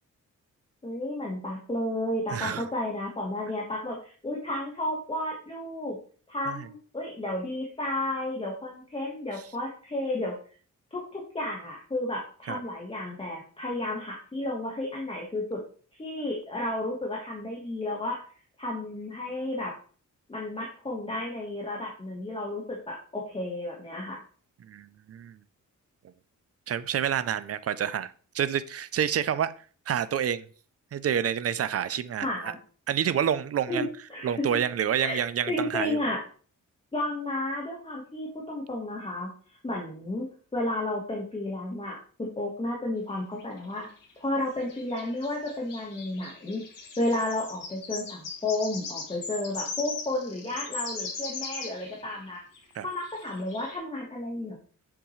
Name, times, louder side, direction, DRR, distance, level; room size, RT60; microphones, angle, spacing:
voice 1, 0.8-6.0 6.3-10.3 10.9-15.6 16.0-18.2 18.6-19.7 20.3-24.2 32.2-32.6 33.7-33.8 34.1-34.5 35.0-35.2 35.5-36.2 36.9-39.3 39.6-40.3 40.5-43.9 44.2-46.6 47.0-52.4 52.8-54.6, left 1 dB, 20° left, 1.4 m, -32 dB
voice 2, 2.3-2.6 6.5-6.7 12.5-12.6 24.6-25.4 26.7-29.5 29.9-30.4 30.9-32.5 32.9-33.9 34.2-36.0 52.7-52.9, right 9 dB, 50° right, 0.5 m, -28 dB
sound 1, 43.1-44.1 44.7-52.3 52.5-53.8, left 4 dB, 85° left, 2.4 m, -39 dB
7.2 x 7.1 x 3.1 m
wide cardioid pair, 180°, 32 cm